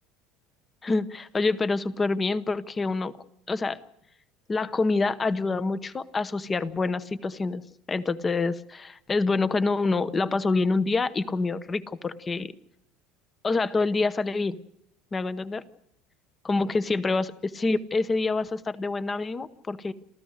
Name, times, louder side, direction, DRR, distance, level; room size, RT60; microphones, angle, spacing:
voice 1, 0.8-3.1 3.5-3.8 4.5-7.6 7.9-12.5 13.4-14.6 15.1-15.6 16.4-19.9, left 3 dB, 15° left, 14 dB, 0.9 m, -26 dB
28.0 x 14.5 x 6.6 m, 0.79 s
cardioid pair, 150°, 0 cm